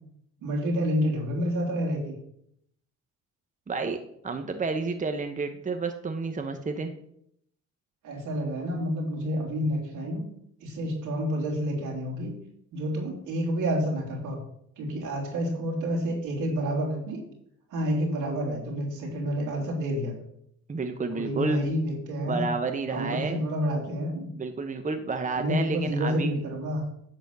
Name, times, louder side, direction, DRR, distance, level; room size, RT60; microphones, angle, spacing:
voice 1, 0.4-2.2 8.0-10.2 10.6-12.3 12.7-14.4 14.8-17.2 17.7-20.1 21.1-22.5 22.9-24.3 25.4-26.8, equal, 85° right, 0 dB, 3.2 m, -29 dB
voice 2, 3.7-4.0 4.2-6.9 20.7-21.7 22.2-23.4 24.4-26.3, right 4 dB, 25° right, 7 dB, 1.0 m, -30 dB
10.5 x 4.1 x 6.8 m, 0.72 s
cardioid pair, 90°, 30 cm